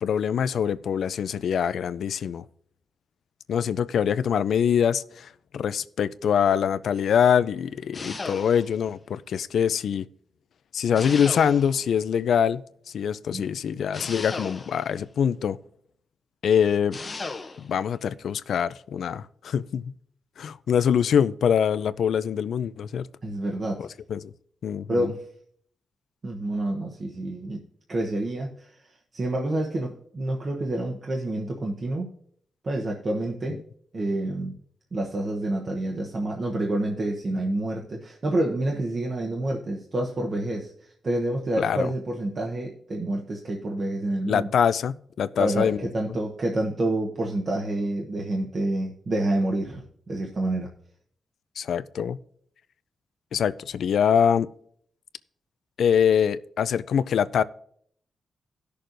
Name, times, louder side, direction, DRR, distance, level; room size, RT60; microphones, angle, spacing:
voice 1, 0.0-2.4 3.5-10.0 10.7-12.6 12.9-15.6 16.4-17.0 17.6-19.9 20.4-23.1 23.8-24.3 24.6-25.1 41.6-41.9 44.3-45.9 51.6-52.2 53.3-54.5 55.8-57.4, left 8 dB, 70° left, 0.3 m, -24 dB
sound 1, 7.9-8.8 11.0-11.9 13.9-15.0 16.9-17.7, left 3 dB, 30° left, 0.6 m, -36 dB
voice 2, 23.2-23.9 24.9-25.2 26.2-27.6 27.9-28.7 29.1-32.1 32.6-33.6 33.9-34.5 34.9-40.7 41.0-44.5 45.4-49.8 50.1-50.7, right 1 dB, 35° right, 0.9 m, -28 dB
17.5 x 6.6 x 2.6 m
wide cardioid pair, 150°, 0 cm